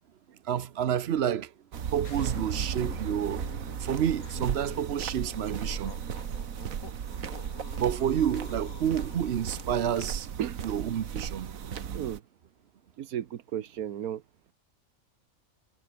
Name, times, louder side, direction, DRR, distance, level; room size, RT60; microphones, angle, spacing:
voice 1, 0.4-1.5 1.9-3.5 3.8-5.9 7.8-10.3 10.6-11.5, right 9 dB, 55° right, 1.0 m, -29 dB
sound 1, 1.7-12.2, right 8 dB, 70° right, 1.6 m, -36 dB
sound 2, 2.0-10.0, left 6 dB, 75° left, 2.3 m, -46 dB
voice 2, 10.4-10.7 11.9-12.2 13.0-14.2, right 10 dB, 85° right, 1.4 m, -34 dB
omnidirectional pair, 1.5 m